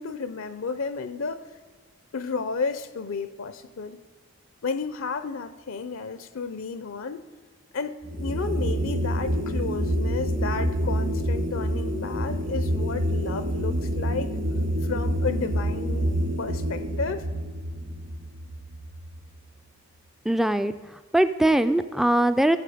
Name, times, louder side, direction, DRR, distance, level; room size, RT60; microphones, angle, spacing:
voice 1, 0.0-1.4 2.1-4.0 4.6-7.2 7.7-14.3 14.8-17.3, left 4 dB, 65° left, 0.5 m, -32 dB
sound 1, 8.0-19.4, equal, 55° right, 1.6 m, -27 dB
voice 2, 20.3-20.7 21.1-22.6, right 1 dB, ahead, 0.3 m, -21 dB
15.0 x 7.4 x 5.0 m
head